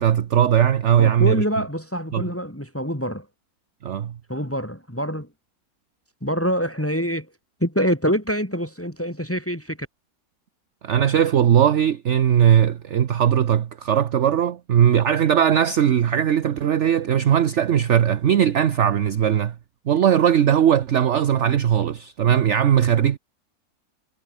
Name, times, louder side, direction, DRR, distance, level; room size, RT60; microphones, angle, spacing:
voice 1, 0.0-1.4 2.1-2.2 3.8-4.1 10.8-19.5 19.9-23.2, right 9 dB, 55° right, 1.1 m, -19 dB
voice 2, 1.0-3.3 4.3-5.3 6.2-7.3 7.6-9.9, equal, 10° left, 4.8 m, -25 dB
omnidirectional pair, 1.6 m